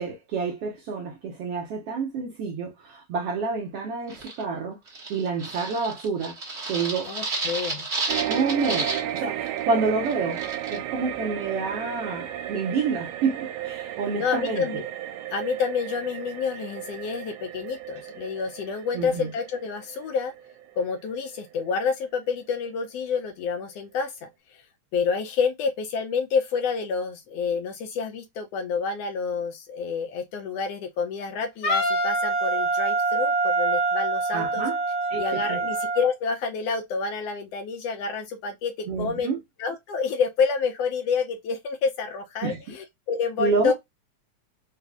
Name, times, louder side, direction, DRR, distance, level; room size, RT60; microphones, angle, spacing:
voice 1, 0.0-4.8 5.1-6.4 6.7-7.1 8.2-8.9 9.2-10.4 10.7-14.6 18.9-19.3 34.3-34.8 35.1-35.2 35.5-35.6 38.9-39.4 42.4-42.6 43.4-43.7, right 4 dB, 65° right, 1.7 m, -28 dB
sound 1, 4.1-4.4 4.9-9.2 9.5-9.6 10.1-10.8, right 3 dB, 35° right, 1.2 m, -31 dB
voice 2, 7.1-7.9 14.1-14.9 15.3-20.3 20.8-24.6 24.9-34.6 35.2-39.3 39.6-43.7, left 5 dB, 75° left, 1.5 m, -28 dB
sound 2, 8.1-22.7 23.1-23.2, right 12 dB, 80° right, 1.9 m, -34 dB
Wind instrument woodwind instrument, 31.6-36.1, right 3 dB, 50° left, 1.0 m, -25 dB
4.8 x 2.4 x 3.4 m
omnidirectional pair, 3.4 m